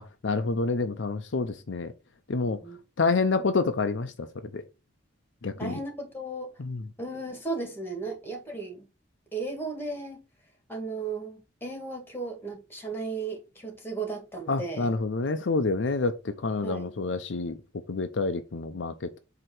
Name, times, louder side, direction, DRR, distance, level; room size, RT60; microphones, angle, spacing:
voice 1, 0.0-1.9 2.3-2.6 3.0-4.3 4.5-4.6 5.4-5.8 6.6-6.8 14.5-17.6 17.9-19.2, left 3 dB, 65° left, 0.6 m, -28 dB
voice 2, 5.6-6.5 7.0-8.9 9.3-10.2 10.7-14.9 16.6-16.9, right 3 dB, 10° left, 1.9 m, -35 dB
7.7 x 2.9 x 4.4 m
head